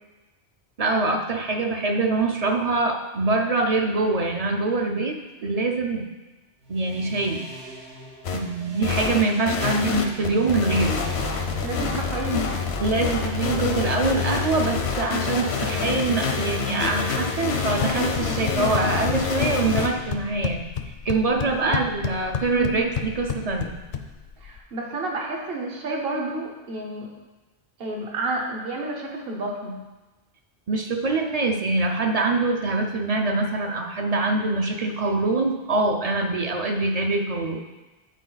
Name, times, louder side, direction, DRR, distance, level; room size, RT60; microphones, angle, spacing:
voice 1, 0.8-6.1 6.7-7.5 8.3-11.0 12.8-20.6 21.0-23.8 30.7-37.7, right 3 dB, 45° right, 3 dB, 0.5 m, -24 dB
sound 1, 6.6-20.3, equal, 80° right, 1.4 m, -40 dB
sound 2, 8.2-8.4 8.8-19.9, left 5 dB, 80° left, 1.0 m, -27 dB
voice 2, 11.6-12.7 21.4-21.7 22.5-22.8 24.4-27.1 27.8-29.8, right 2 dB, 65° right, 0 dB, 1.3 m, -30 dB
sound 3, 17.6-24.6, left 7 dB, 60° left, 0.6 m, -32 dB
9.2 x 4.3 x 3.9 m, 1.1 s
omnidirectional pair, 1.1 m